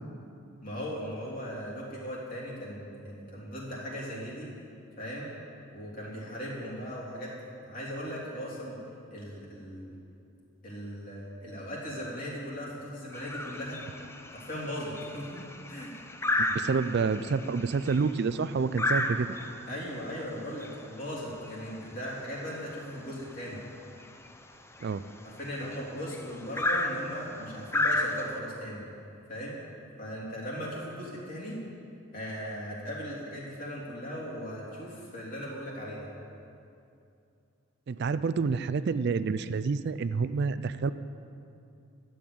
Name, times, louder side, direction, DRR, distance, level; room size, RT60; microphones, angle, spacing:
voice 1, 0.6-4.5 5.0-5.3 5.7-7.3 7.6-8.8 9.1-9.9 10.6-13.8 14.3-15.9 19.7-23.6 25.2-28.8 29.3-29.6 30.0-31.6 32.1-36.1, equal, 40° left, -6 dB, 3.4 m, -38 dB
sound 1, 13.1-28.4, left 2 dB, 10° left, 0.6 m, -34 dB
voice 2, 16.4-19.3 24.8-25.0 37.9-40.9, right 5 dB, 50° right, 13 dB, 0.3 m, -28 dB
12.5 x 7.9 x 8.6 m, 2.6 s
head